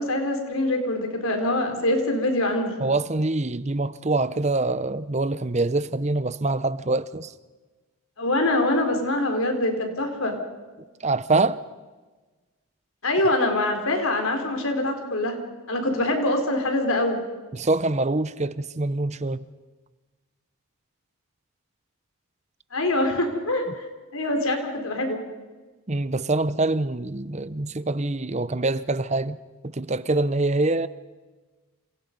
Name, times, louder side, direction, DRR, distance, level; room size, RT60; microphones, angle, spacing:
voice 1, 0.0-2.7 8.2-10.4 13.0-15.4 15.7-17.2 22.7-23.8 24.1-25.2, left 1 dB, 70° left, 4.4 m, -24 dB
voice 2, 2.8-7.3 11.0-11.6 17.5-19.5 25.9-29.4 29.6-30.9, right 2 dB, 30° right, 0.8 m, -25 dB
28.5 x 28.0 x 5.4 m
head